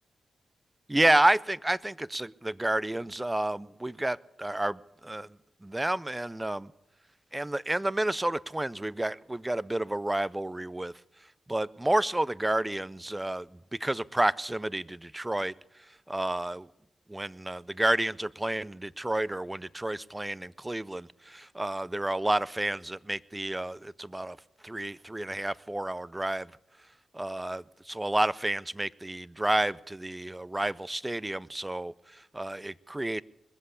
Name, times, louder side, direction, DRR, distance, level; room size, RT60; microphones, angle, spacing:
voice 1, 0.9-6.7 7.3-10.9 11.5-15.5 16.1-16.7 17.1-24.4 24.6-26.5 27.1-33.2, right 1 dB, 15° right, 0.5 m, -30 dB
21.0 x 7.7 x 8.3 m
cardioid pair, 50°, 0 cm